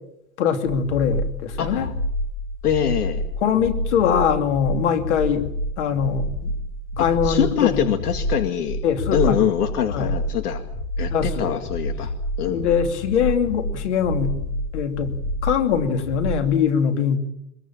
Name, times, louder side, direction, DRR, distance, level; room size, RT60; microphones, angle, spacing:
voice 1, 0.4-1.9 3.4-5.5 5.8-6.5 7.0-7.9 8.8-9.5 9.9-10.1 11.1-11.6 12.5-14.4 14.7-15.1 15.4-17.2, left 7 dB, 45° left, 7 dB, 2.9 m, -22 dB
sound 1, 0.7-16.5, equal, 15° left, 0.9 m, -28 dB
voice 2, 1.6-1.9 2.6-3.2 7.0-8.8 9.1-10.6 11.0-12.1 12.4-12.7, left 9 dB, 65° left, 7 dB, 2.2 m, -24 dB
23.5 x 22.5 x 7.5 m, 0.77 s
supercardioid pair, 175°, 49 cm